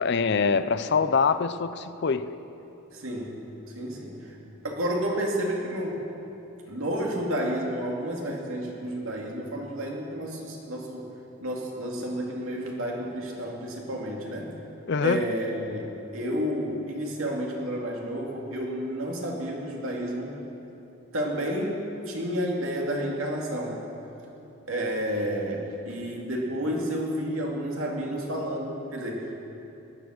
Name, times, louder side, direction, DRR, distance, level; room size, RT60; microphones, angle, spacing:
voice 1, 0.0-2.3 14.9-15.3, left 5 dB, 55° left, 12 dB, 0.5 m, -24 dB
voice 2, 2.9-3.4 3.7-4.4 4.6-6.0 6.7-11.1 11.4-14.5 15.0-20.4 21.1-23.8 24.7-29.4, equal, 80° right, -1 dB, 2.5 m, -31 dB
17.0 x 10.5 x 6.5 m, 2.9 s
head